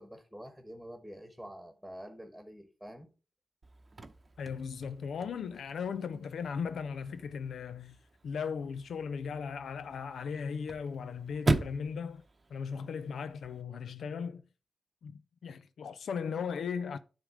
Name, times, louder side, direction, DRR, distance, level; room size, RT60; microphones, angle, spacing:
voice 1, 0.0-3.1, equal, ahead, 1.3 m, -47 dB
Chirp tweet / Car / Slam, 3.6-13.6, right 3 dB, 35° right, 0.8 m, -39 dB
voice 2, 4.4-12.2 12.5-14.4 15.0-17.0, left 6 dB, 85° left, 0.4 m, -37 dB
10.5 x 3.6 x 4.9 m
cardioid pair, 85°, 0 cm